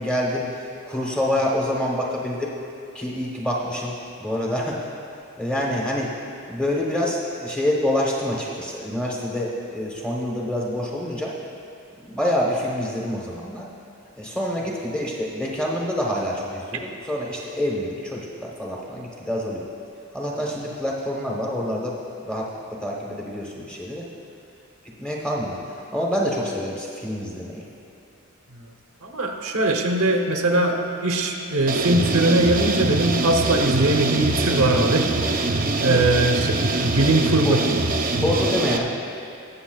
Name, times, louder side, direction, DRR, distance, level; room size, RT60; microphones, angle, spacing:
voice 1, 0.0-2.5 2.9-4.9 5.4-6.1 6.5-11.3 12.0-13.7 14.2-19.7 20.1-22.0 22.2-24.0 25.0-25.6 25.9-27.6 35.9-36.1 37.4-37.6 38.2-38.9, left 1 dB, 5° left, -3 dB, 1.0 m, -26 dB
voice 2, 29.0-35.1 35.8-36.5 36.8-37.6, right 2 dB, 75° right, 3 dB, 0.9 m, -21 dB
sound 1, 31.7-38.8, right 2 dB, 40° right, 0.5 m, -24 dB
19.5 x 7.0 x 2.3 m, 2.7 s
head